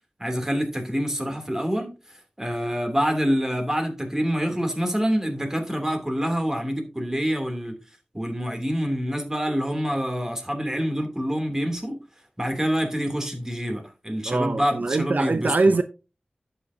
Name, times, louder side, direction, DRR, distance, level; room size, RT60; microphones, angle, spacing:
voice 1, 0.2-1.9 2.4-7.8 8.1-12.0 12.4-15.8, equal, 15° right, 2.9 m, -26 dB
voice 2, 14.2-15.8, right 3 dB, 65° right, 0.5 m, -22 dB
11.0 x 8.8 x 2.8 m
wide cardioid pair, 45°, 3 cm